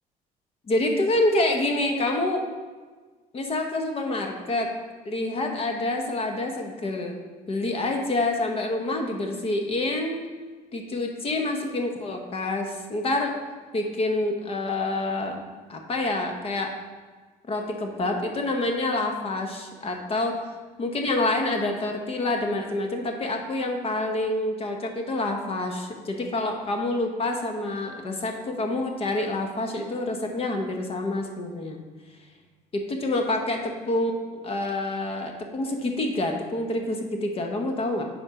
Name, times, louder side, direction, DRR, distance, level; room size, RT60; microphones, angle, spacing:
voice 1, 0.7-2.4 3.3-4.7 5.0-7.2 7.5-10.2 10.7-13.3 13.7-15.4 15.7-16.7 17.5-20.4 20.8-31.8 32.7-38.0, left 2 dB, 35° left, 3 dB, 0.9 m, -27 dB
6.5 x 4.4 x 5.7 m, 1.4 s
cardioid pair, 115°, 16 cm